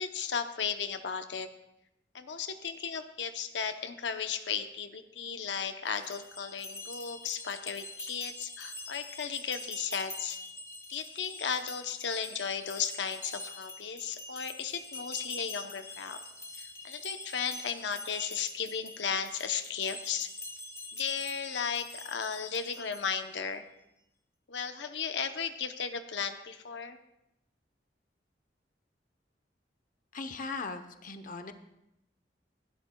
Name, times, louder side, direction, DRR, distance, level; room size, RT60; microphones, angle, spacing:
voice 1, 0.0-1.5 2.1-10.4 10.9-16.2 16.6-20.3 20.9-23.6 24.5-27.0, left 6 dB, 85° left, 8 dB, 0.8 m, -35 dB
sound 1, 5.9-23.3, left 2 dB, 20° left, 1.0 m, -45 dB
voice 2, 30.1-31.5, left 4 dB, 50° left, 9 dB, 0.8 m, -39 dB
27.0 x 11.5 x 2.3 m, 0.84 s
head